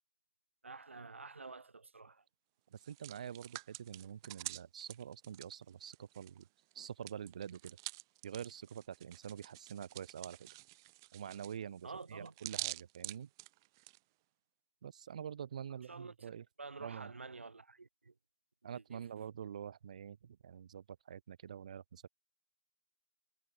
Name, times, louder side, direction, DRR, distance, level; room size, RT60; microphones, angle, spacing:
voice 1, 0.6-2.2 11.8-12.3 15.9-16.1 16.6-18.1 18.7-19.0, right 4 dB, 70° right, 3.8 m, -49 dB
Hands, 2.7-6.4 6.7-14.0, right 22 dB, 20° right, 1.1 m, -47 dB
voice 2, 2.7-6.5 6.7-7.8 8.2-10.5 11.1-13.3 14.8-16.5 16.8-17.1 18.6-22.1, right 8 dB, 35° right, 0.6 m, -46 dB
figure-of-eight pair, 160°, 7 cm